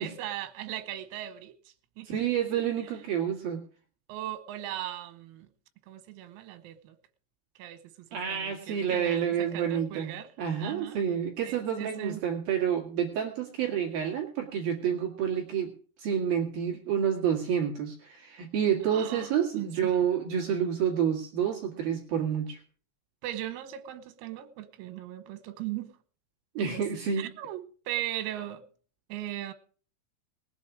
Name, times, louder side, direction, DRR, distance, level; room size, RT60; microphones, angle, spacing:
voice 1, 0.0-1.6 2.0-2.1 4.1-5.5 5.9-7.0 7.6-10.3 10.6-11.1 11.5-12.2 18.9-20.0 23.2-25.9 27.2-28.6 29.1-29.5, right 13 dB, 90° right, 3.9 m, -38 dB
voice 2, 2.1-3.6 8.1-10.1 10.4-15.7 16.0-22.6 26.5-27.3, right 8 dB, 55° right, 3.2 m, -29 dB
20.0 x 8.2 x 4.9 m
omnidirectional pair, 6.0 m